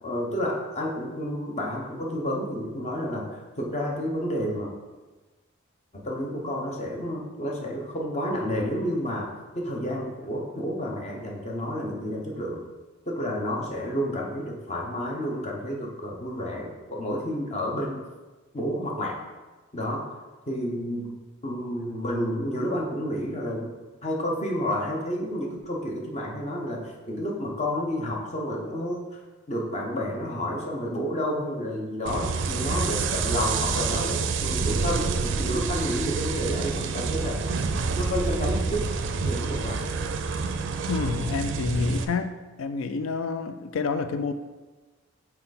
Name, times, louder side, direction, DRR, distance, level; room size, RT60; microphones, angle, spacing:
voice 1, 0.0-3.3 3.6-4.7 5.9-12.6 13.1-18.1 18.5-19.2 19.7-20.1 20.5-21.1 21.4-23.7 24.0-29.2 29.5-37.4 37.9-38.9 39.2-39.8, equal, 30° left, -1 dB, 0.9 m, -30 dB
sound 1, 32.1-42.1, right 4 dB, 60° right, 0.4 m, -28 dB
voice 2, 40.9-42.3 42.6-44.3, left 4 dB, 75° left, 9 dB, 0.4 m, -28 dB
5.8 x 4.4 x 4.1 m, 1.2 s
head